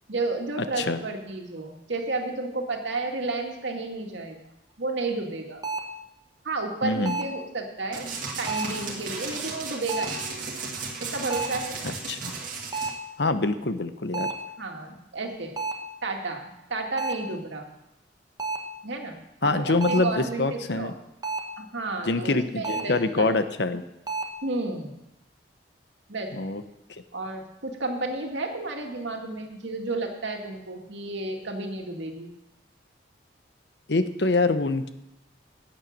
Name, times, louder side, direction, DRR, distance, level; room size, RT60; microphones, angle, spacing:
voice 1, 0.1-4.5 4.8-5.6 6.4-10.2 11.0-11.8 14.6-15.6 16.0-17.7 18.8-20.9 21.6-23.3 24.4-25.0 26.1-26.5 27.1-32.3, right 2 dB, 80° right, 2 dB, 2.1 m, -32 dB
sound 1, 5.6-6.0 7.0-7.4 8.5-8.9 9.9-10.3 11.3-11.7 12.7-13.1 14.1-14.5 15.6-15.9 17.0-17.3 18.4-18.8 19.8-20.2 21.2-21.6 22.6-23.0 24.1-24.3, right 3 dB, 20° right, 1.1 m, -31 dB
voice 2, 6.8-7.2 11.8-12.3 13.2-14.3 19.4-20.9 22.0-23.8 26.3-26.6 26.9-27.0 33.9-34.9, left 2 dB, 65° left, 10 dB, 0.9 m, -25 dB
sound 2, 7.9-12.9, right 4 dB, 45° right, 2.1 m, -35 dB
11.5 x 8.9 x 7.3 m, 0.88 s
head